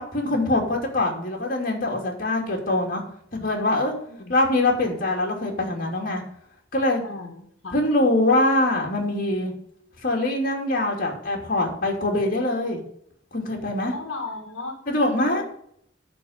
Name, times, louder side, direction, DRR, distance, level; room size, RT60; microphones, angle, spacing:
voice 1, 0.0-3.0 3.3-3.9 4.3-6.2 6.7-7.0 7.7-9.5 10.0-12.8 13.3-13.9 14.9-15.4, left 2 dB, 50° left, 1 dB, 2.9 m, -23 dB
voice 2, 7.0-7.8 13.9-15.4, left 3 dB, 90° left, 3 dB, 1.7 m, -36 dB
11.0 x 4.6 x 8.0 m, 0.67 s
head